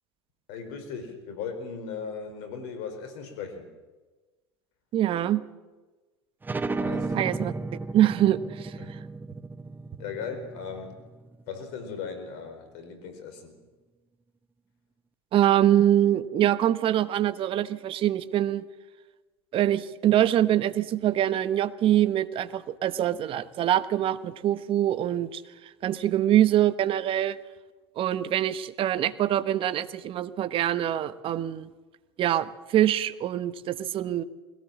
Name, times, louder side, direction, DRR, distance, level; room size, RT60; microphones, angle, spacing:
voice 1, 0.5-3.7 6.8-7.2 8.8-9.0 10.0-11.0 11.5-13.5, left 6 dB, 60° left, 8 dB, 4.7 m, -37 dB
voice 2, 4.9-5.4 7.1-7.5 7.9-9.0 15.3-18.7 19.5-27.4 28.0-31.7 32.2-34.2, right 12 dB, 40° right, 15 dB, 1.1 m, -24 dB
sound 1, 6.4-11.7, right 3 dB, 15° right, 0.9 m, -34 dB
21.5 x 17.0 x 7.5 m, 1.2 s
hypercardioid pair, 85°, 14 cm